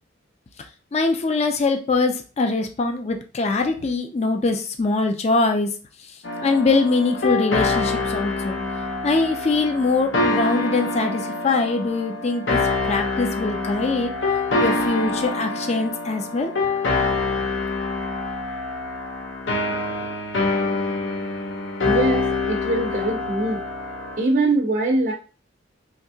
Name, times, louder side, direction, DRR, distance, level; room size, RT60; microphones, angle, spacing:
voice 1, 0.9-5.7 6.4-8.6 9.0-12.6 12.9-14.1 14.6-16.5, left 3 dB, 35° left, 5 dB, 0.4 m, -22 dB
sound 1, 6.2-24.2, left 3 dB, 70° left, 0.7 m, -25 dB
voice 2, 21.8-23.6 24.2-25.1, right 2 dB, 45° right, -1 dB, 0.5 m, -22 dB
3.4 x 2.7 x 2.7 m, 0.35 s
head